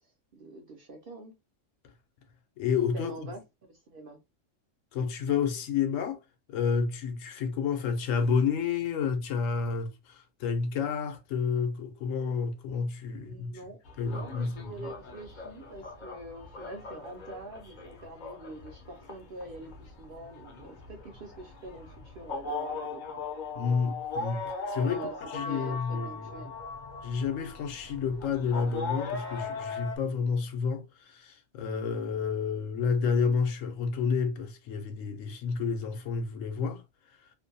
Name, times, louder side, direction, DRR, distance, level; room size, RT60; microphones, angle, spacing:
voice 1, 0.0-1.3 2.9-3.4 3.7-4.2 13.2-23.2 24.7-25.2 25.4-26.6, right 2 dB, 60° right, 0.6 m, -45 dB
voice 2, 2.6-3.1 4.9-6.2 6.5-13.6 14.0-14.8 23.5-25.0 25.3-26.5 27.0-36.8, left 5 dB, 75° left, 1.0 m, -30 dB
sound 1, 13.8-30.0, left 4 dB, 50° left, 0.6 m, -39 dB
2.5 x 2.2 x 2.6 m
omnidirectional pair, 1.3 m